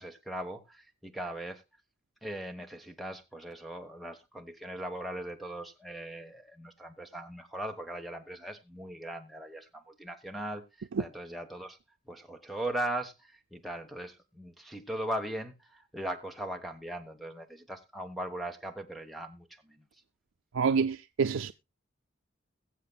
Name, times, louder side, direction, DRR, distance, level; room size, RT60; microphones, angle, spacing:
voice 1, 0.0-1.6 2.2-11.8 12.1-19.8, right 1 dB, ahead, 1.2 m, -39 dB
voice 2, 20.5-21.5, right 5 dB, 85° right, 0.5 m, -27 dB
22.0 x 7.5 x 2.3 m
head